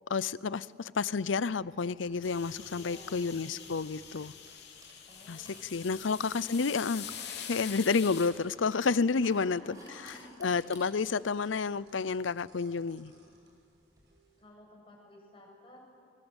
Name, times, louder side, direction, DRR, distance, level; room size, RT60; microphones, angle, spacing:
voice 1, 0.1-4.3 5.3-7.1 7.5-9.8 10.4-13.1, left 4 dB, 90° left, 19 dB, 0.6 m, -30 dB
sound 1, 1.4-14.0, right 1 dB, 20° right, 7.1 m, -60 dB
sound 2, 2.1-14.4, right 1 dB, 60° right, 6.5 m, -63 dB
sound 3, 2.2-8.3, left 8 dB, 60° left, 3.6 m, -45 dB
voice 2, 2.7-3.3 5.1-6.3 9.2-10.5 14.4-15.8, left 1 dB, 30° left, -1 dB, 6.9 m, -53 dB
30.0 x 23.0 x 8.1 m, 2.4 s
head